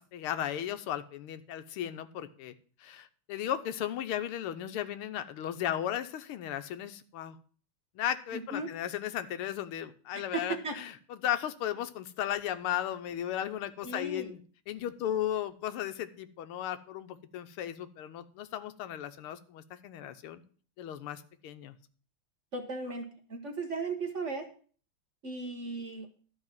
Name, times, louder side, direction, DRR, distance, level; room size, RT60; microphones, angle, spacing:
voice 1, 0.0-2.5 2.8-7.4 7.9-14.4 14.7-20.4 20.8-21.7, left 11 dB, 85° left, 11 dB, 1.7 m, -35 dB
voice 2, 8.3-8.7 10.1-10.8 13.8-14.3 22.5-24.5 25.2-26.1, right 3 dB, 45° right, 4 dB, 1.2 m, -36 dB
12.5 x 4.8 x 7.3 m, 0.43 s
omnidirectional pair, 2.4 m